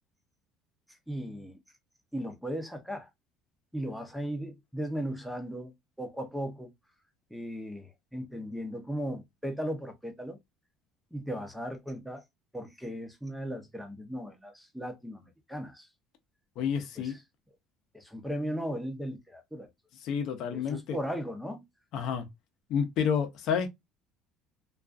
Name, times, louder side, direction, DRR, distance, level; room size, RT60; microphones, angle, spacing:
voice 1, 1.1-1.6 2.1-3.1 3.7-5.7 6.0-6.7 7.3-10.4 11.1-12.2 12.5-15.9 17.0-17.2 17.9-19.7 20.5-21.6, equal, ahead, 0.5 m, -37 dB
voice 2, 16.6-17.1 20.0-21.0 21.9-22.3 22.7-23.7, left 7 dB, 60° left, 0.6 m, -29 dB
2.3 x 2.3 x 2.3 m
cardioid pair, 130°, 0 cm